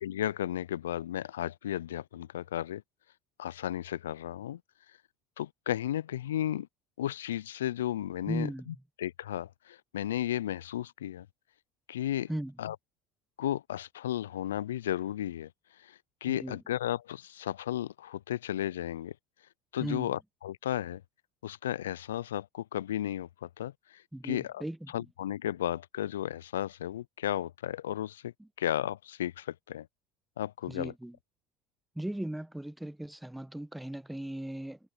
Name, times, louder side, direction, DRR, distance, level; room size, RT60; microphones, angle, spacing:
voice 1, 0.0-2.8 3.4-4.6 5.4-6.7 7.0-11.3 11.9-12.3 12.6-12.8 13.4-15.5 15.8-19.1 19.7-21.0 21.4-28.3 28.6-29.9 30.4-30.9, left 12 dB, 85° left, 0.3 m, -34 dB
voice 2, 8.3-8.7 12.3-12.5 16.3-16.6 19.8-20.1 24.1-25.0 28.4-28.5 30.7-31.1 32.0-34.8, right 1 dB, 5° right, 1.2 m, -37 dB
hypercardioid pair, 75°, 0 cm